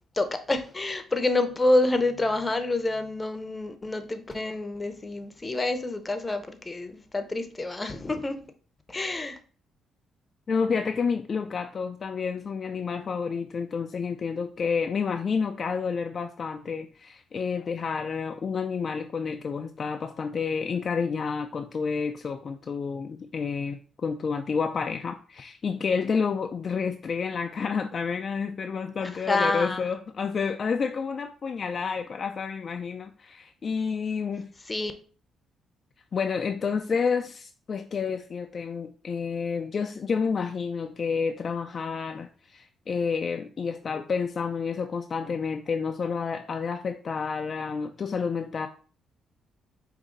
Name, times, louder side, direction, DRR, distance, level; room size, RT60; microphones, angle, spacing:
voice 1, 0.1-8.4 8.9-9.4 29.0-29.9 34.7-34.9, left 2 dB, 20° left, 0.7 m, -27 dB
voice 2, 10.5-34.5 36.1-48.7, left 5 dB, 45° left, 0.3 m, -29 dB
4.9 x 2.6 x 3.8 m
cardioid pair, 90°, 0 cm